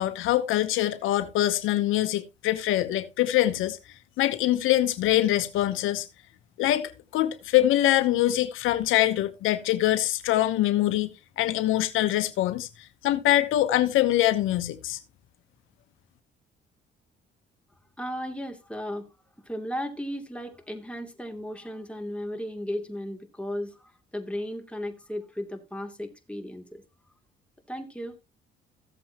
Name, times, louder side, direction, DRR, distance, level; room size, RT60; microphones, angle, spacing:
voice 1, 0.0-3.8 4.2-6.1 6.6-11.1 11.4-15.0, left 14 dB, 90° left, 0.9 m, -24 dB
voice 2, 18.0-19.1 19.5-23.7 24.1-26.8 27.7-28.2, equal, 5° left, 2.8 m, -35 dB
15.0 x 7.7 x 2.9 m
cardioid pair, 90°, 20 cm